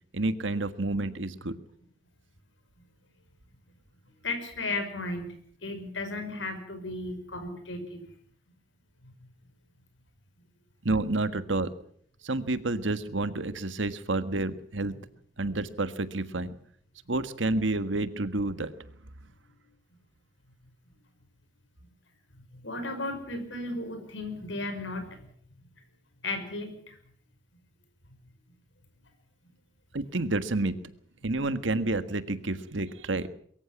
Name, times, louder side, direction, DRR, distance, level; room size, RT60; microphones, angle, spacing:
voice 1, 0.1-1.6 10.8-11.7 12.2-14.9 15.4-16.5 17.1-18.7 29.9-30.8 31.2-33.3, right 2 dB, 80° right, 12 dB, 1.5 m, -29 dB
voice 2, 4.2-5.3 5.6-8.0 9.0-9.3 22.3-25.6 26.2-27.0, left 2 dB, 80° left, 8 dB, 5.5 m, -35 dB
23.0 x 14.5 x 8.7 m, 0.64 s
head